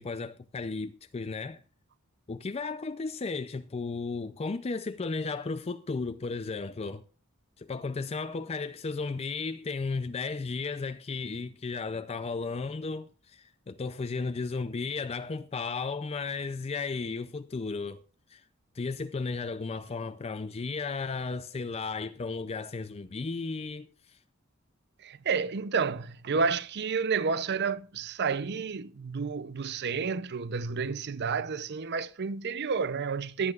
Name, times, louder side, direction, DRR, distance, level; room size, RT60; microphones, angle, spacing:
voice 1, 0.0-1.6 2.3-7.0 7.6-18.0 18.3-18.4 18.7-24.2, left 4 dB, 30° left, 0.4 m, -34 dB
voice 2, 25.0-33.5, right 5 dB, 50° right, 0.6 m, -30 dB
21.0 x 8.9 x 2.4 m
head